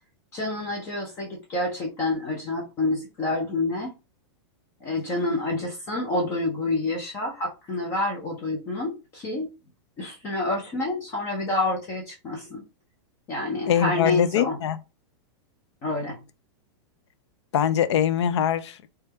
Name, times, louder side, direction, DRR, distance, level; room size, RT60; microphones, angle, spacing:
voice 1, 0.3-3.9 4.8-9.5 10.0-12.6 13.3-14.6 15.8-16.2, left 2 dB, 20° left, 0.4 m, -28 dB
voice 2, 13.7-14.8 17.5-18.8, left 9 dB, 75° left, 0.4 m, -23 dB
3.2 x 2.2 x 3.1 m
supercardioid pair, 175°, 15 cm